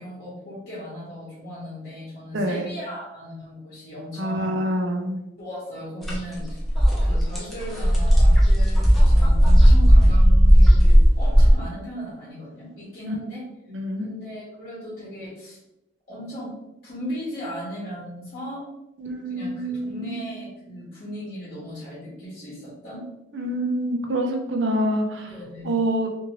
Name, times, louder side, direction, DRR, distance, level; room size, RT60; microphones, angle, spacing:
voice 1, 0.0-4.6 5.4-6.6 7.0-13.4 14.0-15.6 16.1-16.5 16.8-18.7 19.2-23.0 25.3-25.7, equal, 50° left, -9 dB, 1.0 m, -37 dB
voice 2, 2.3-2.7 4.2-5.2 13.1-13.2 13.7-14.1 19.0-20.2 23.3-25.3 25.6-26.1, right 1 dB, 80° right, 3 dB, 0.5 m, -26 dB
sound 1, 6.0-6.2 6.5-11.5, equal, ahead, 0.5 m, -15 dB
2.6 x 2.6 x 3.0 m, 0.91 s
head